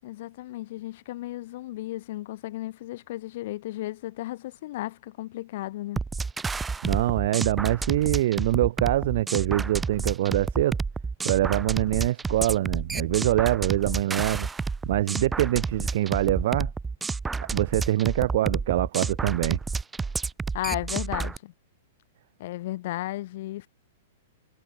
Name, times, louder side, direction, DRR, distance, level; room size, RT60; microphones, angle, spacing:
voice 1, 0.0-6.0 20.5-21.5 22.4-23.7, left 16 dB, 50° left, 6.1 m, -34 dB
sound 1, 6.0-21.4, right 4 dB, 5° right, 1.7 m, -30 dB
voice 2, 6.8-10.8 11.2-14.5 14.8-16.7 17.5-19.6, right 14 dB, 50° right, 1.0 m, -24 dB
supercardioid pair, 165°, 0 cm